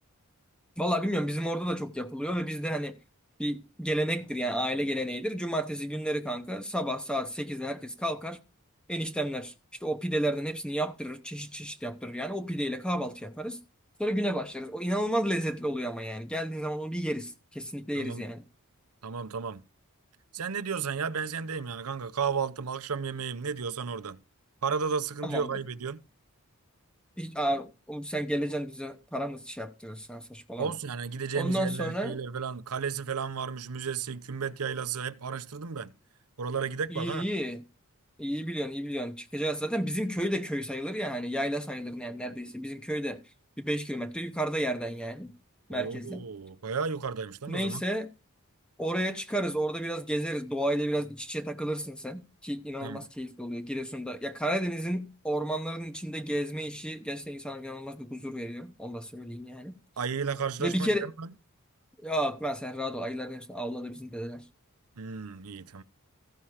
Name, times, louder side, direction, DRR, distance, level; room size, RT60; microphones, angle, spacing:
voice 1, 0.8-3.0 3.4-8.4 8.9-9.5 9.8-13.6 14.0-18.4 25.2-25.5 27.2-30.7 31.3-32.2 36.9-37.6 38.2-43.2 43.6-45.3 45.7-46.2 47.5-48.1 48.8-59.8 60.6-61.1 62.0-64.4, right 1 dB, 5° left, 0.7 m, -32 dB
voice 2, 19.0-19.6 20.3-24.2 24.6-26.0 30.6-35.9 36.4-37.2 45.7-47.8 52.8-53.1 60.0-61.3 65.0-65.8, right 6 dB, 85° right, 0.7 m, -33 dB
14.5 x 5.7 x 4.7 m
head